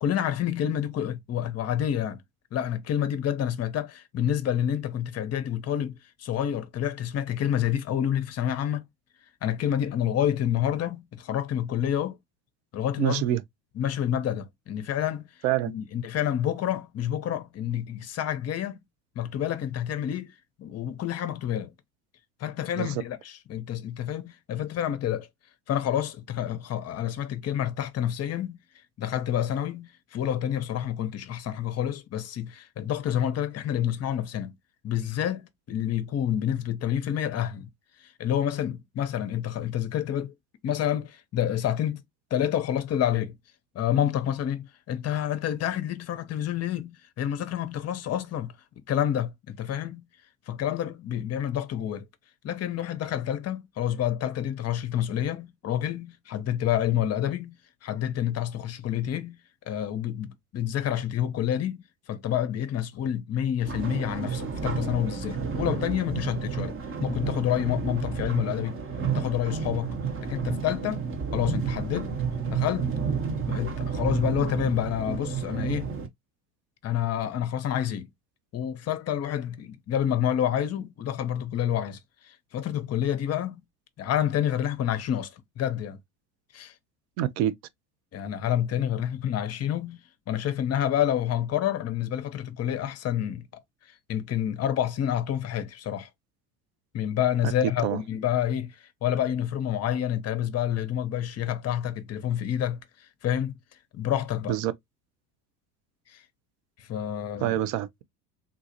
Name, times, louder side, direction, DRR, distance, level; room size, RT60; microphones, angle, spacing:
voice 1, 0.0-2.2 2.5-8.8 9.4-12.2 12.7-13.2 13.8-15.3 15.6-18.8 19.2-20.3 20.6-21.7 22.4-25.3 25.7-28.6 29.0-34.5 34.8-35.4 35.7-37.7 38.0-40.3 40.6-42.0 42.3-43.3 43.7-48.5 48.9-50.1 50.5-52.0 52.4-59.4 59.7-66.7 67.0-68.8 69.1-70.0 70.2-71.0 71.3-72.2 72.5-72.9 73.5-75.9 76.8-78.1 78.5-82.0 82.2-83.6 84.0-86.0 86.5-86.7 88.1-90.0 90.3-93.5 94.1-96.1 96.9-103.5 103.9-104.6 106.1-106.2 106.8-107.6, left 10 dB, 30° left, 0.7 m, -28 dB
voice 2, 13.0-13.4 15.4-15.7 22.8-22.9 87.2-87.5 97.8-98.0 104.5-104.7 107.4-108.0, right 13 dB, 50° right, 0.6 m, -26 dB
sound 1, 63.6-76.1, right 6 dB, 25° right, 0.9 m, -31 dB
3.8 x 2.3 x 2.8 m
hypercardioid pair, 75°, 49 cm